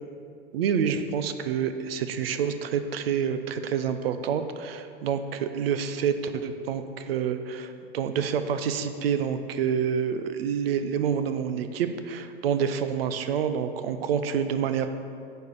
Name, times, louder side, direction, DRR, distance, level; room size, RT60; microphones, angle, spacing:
voice 1, 0.5-14.9, right 7 dB, 75° right, 10 dB, 0.7 m, -28 dB
9.2 x 4.6 x 6.9 m, 2.4 s
hypercardioid pair, 85°, 30 cm